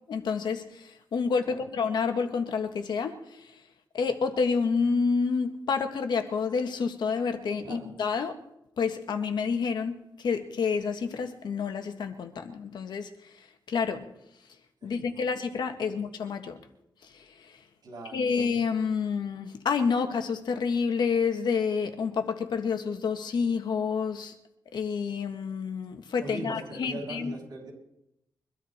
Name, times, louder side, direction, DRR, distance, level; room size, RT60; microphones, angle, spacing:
voice 1, 0.1-3.6 3.9-8.3 8.8-14.1 14.8-16.6 17.0-17.6 18.1-24.3 24.7-27.3, left 5 dB, 75° left, 7 dB, 1.6 m, -29 dB
voice 2, 14.8-15.3 17.8-18.4 26.2-27.7, right 3 dB, 60° right, -2 dB, 6.3 m, -41 dB
23.5 x 13.0 x 4.4 m, 0.83 s
wide cardioid pair, 140°, 8 cm